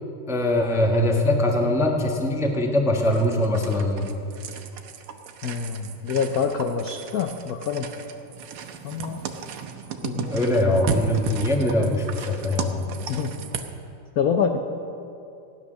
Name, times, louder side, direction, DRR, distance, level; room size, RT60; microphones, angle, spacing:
voice 1, 0.3-4.2 10.3-12.8, left 1 dB, ahead, 1 dB, 0.7 m, -22 dB
sound 1, 3.0-13.7, right 7 dB, 80° right, 1.8 m, -34 dB
voice 2, 5.4-7.9 8.8-9.2 10.0-10.9 13.1-13.3 14.2-14.6, left 6 dB, 70° left, 5 dB, 0.9 m, -26 dB
16.0 x 10.5 x 6.4 m, 2.7 s
omnidirectional pair, 2.4 m